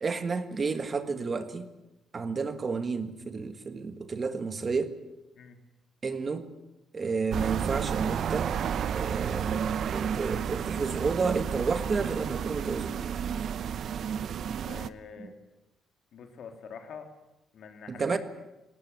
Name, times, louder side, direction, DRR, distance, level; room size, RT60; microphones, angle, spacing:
voice 1, 0.0-1.7 2.1-4.9 6.0-6.5 6.9-8.5 8.9-13.0 15.2-15.3 17.9-18.2, right 4 dB, 35° right, 10 dB, 1.7 m, -31 dB
sound 1, 7.3-14.9, right 8 dB, 60° right, 0.8 m, -31 dB
voice 2, 14.6-15.3 16.1-17.1 17.5-18.2, left 6 dB, 65° left, 5 dB, 3.3 m, -45 dB
19.0 x 18.5 x 9.7 m, 0.94 s
cardioid pair, 105°, 0 cm